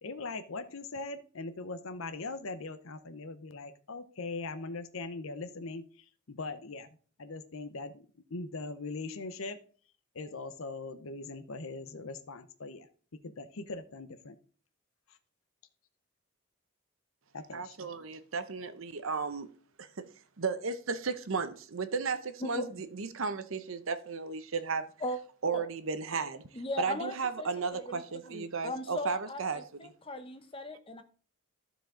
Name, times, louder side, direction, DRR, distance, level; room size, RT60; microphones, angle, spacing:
voice 1, 0.0-6.9 7.2-9.6 10.1-12.9 13.2-14.4 15.1-15.2 17.3-17.8, left 3 dB, 75° left, 9 dB, 0.7 m, -41 dB
voice 2, 17.5-19.5 19.8-20.1 20.4-24.9 25.4-26.4 26.8-29.9, right 5 dB, 70° right, 11 dB, 0.7 m, -34 dB
voice 3, 26.5-28.0 28.3-31.0, left 1 dB, 25° left, 9 dB, 0.8 m, -38 dB
14.0 x 5.0 x 3.8 m, 0.42 s
head